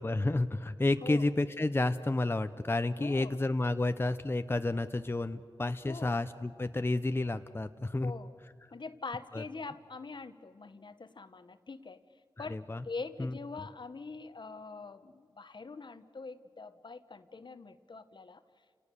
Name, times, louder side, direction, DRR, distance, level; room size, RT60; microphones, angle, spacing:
voice 1, 0.0-8.1 9.3-9.4 12.4-12.8 13.2-13.3, left 2 dB, 25° left, 10 dB, 0.7 m, -31 dB
voice 2, 3.0-3.4 5.9-6.2 8.0-8.3 8.7-12.0 12.4-18.4, left 4 dB, 60° left, 12 dB, 1.0 m, -44 dB
30.0 x 18.5 x 6.8 m, 2.1 s
cardioid pair, 50°, 9 cm